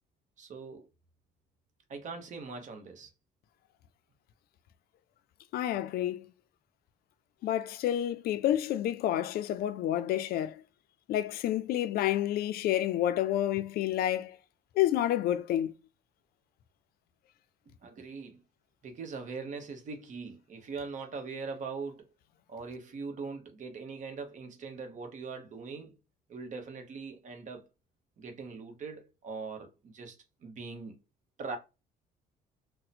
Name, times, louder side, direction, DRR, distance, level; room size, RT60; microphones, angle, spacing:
voice 1, 0.4-0.8 1.9-3.1 17.8-18.4 18.8-22.1 22.5-25.9 26.3-27.7 28.2-31.0 31.4-31.6, right 4 dB, 45° right, 1.0 m, -41 dB
voice 2, 5.5-6.3 7.4-10.6 11.1-14.4 14.8-15.7, left 12 dB, 65° left, 0.4 m, -29 dB
2.7 x 2.1 x 4.1 m
cardioid pair, 110°, 17 cm